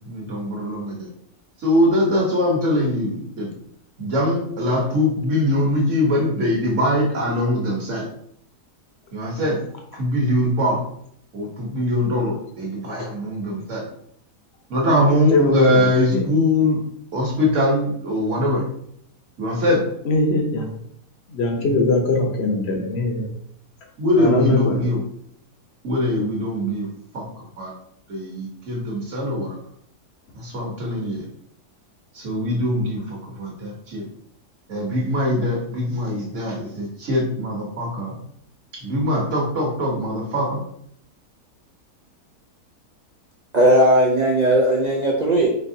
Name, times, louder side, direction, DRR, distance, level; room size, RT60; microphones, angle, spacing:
voice 1, 0.0-1.1 1.6-3.5 4.0-8.1 9.1-9.6 9.9-10.8 11.3-13.8 14.7-16.8 17.1-18.6 19.4-19.9 24.0-25.0 25.8-26.9 27.1-27.7 28.1-29.6 30.3-31.2 32.1-34.0 34.7-38.1 38.7-40.6, left 1 dB, 50° right, -2 dB, 1.4 m, -22 dB
voice 2, 15.3-16.2 20.0-20.8 21.3-23.3 24.2-24.7, left 2 dB, 55° left, 2 dB, 0.8 m, -21 dB
voice 3, 43.5-45.5, right 1 dB, 85° right, -2 dB, 0.3 m, -17 dB
4.3 x 3.9 x 2.7 m, 0.69 s
omnidirectional pair, 1.7 m